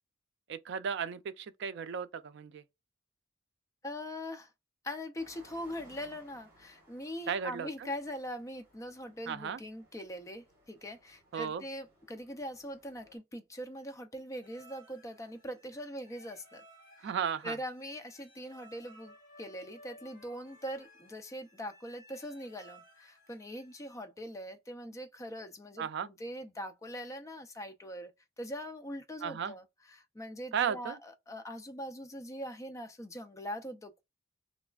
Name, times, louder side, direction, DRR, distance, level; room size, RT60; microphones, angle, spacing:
voice 1, 0.5-2.6 7.3-7.9 9.3-9.6 11.3-11.6 17.0-17.6 25.8-26.1 29.2-29.6 30.5-31.0, right 7 dB, 65° right, 0.4 m, -35 dB
voice 2, 3.8-4.5 4.8-16.6 17.0-17.1 17.4-28.1 28.4-29.6 29.9-34.0, equal, 15° left, 0.4 m, -42 dB
sound 1, 5.2-13.2, equal, 15° right, 1.5 m, -62 dB
sound 2, 14.4-24.0, equal, 45° left, 1.9 m, -59 dB
3.3 x 3.1 x 2.3 m
head